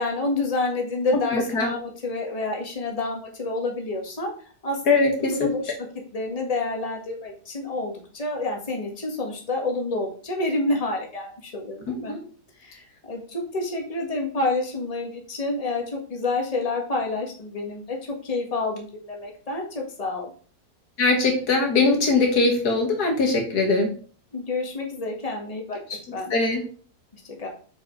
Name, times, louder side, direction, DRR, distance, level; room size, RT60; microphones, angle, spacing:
voice 1, 0.0-4.3 4.6-5.7 6.1-12.2 12.6-18.0 18.2-20.3 24.3-25.8 26.1-26.3 27.1-27.5, left 2 dB, 25° left, 1 dB, 1.7 m, -28 dB
voice 2, 1.3-1.7 4.9-5.5 11.9-12.2 21.0-23.9 26.3-26.6, left 3 dB, 75° left, 2 dB, 2.1 m, -21 dB
7.2 x 5.0 x 4.7 m, 0.42 s
omnidirectional pair, 1.7 m